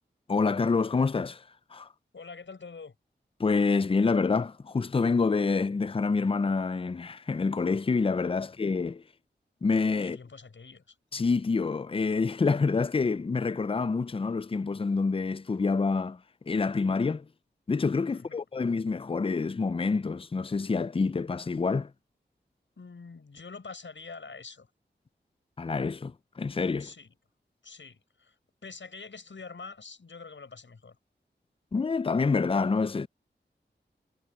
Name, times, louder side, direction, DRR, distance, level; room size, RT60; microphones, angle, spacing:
voice 1, 0.3-1.4 1.7-1.9 3.4-9.0 9.6-10.2 11.1-16.2 16.5-17.3 17.7-21.9 25.6-26.9 31.7-33.1, left 4 dB, 30° left, 0.4 m, -27 dB
voice 2, 2.1-2.9 10.0-11.0 18.1-18.4 22.8-24.7 26.8-27.1 27.6-31.0, left 4 dB, 85° left, 6.7 m, -45 dB
wide cardioid pair, 60°, 19 cm